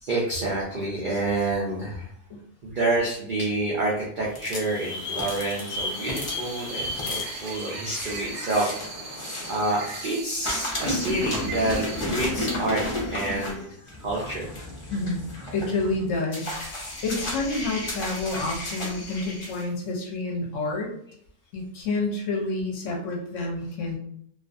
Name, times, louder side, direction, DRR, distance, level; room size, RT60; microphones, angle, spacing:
voice 1, 0.0-2.1 2.6-8.7 9.5-13.7 14.0-14.5, right 2 dB, 85° right, -4 dB, 0.4 m, -28 dB
sound 1, 4.3-10.1 10.4-19.6, left 1 dB, 50° left, 0.3 m, -33 dB
sound 2, 5.9-12.0, right 3 dB, 65° right, 0.8 m, -39 dB
voice 2, 14.9-15.2 15.5-20.9 21.5-24.0, left 2 dB, 65° left, 0 dB, 0.8 m, -29 dB
2.4 x 2.3 x 2.4 m, 0.67 s
omnidirectional pair, 1.6 m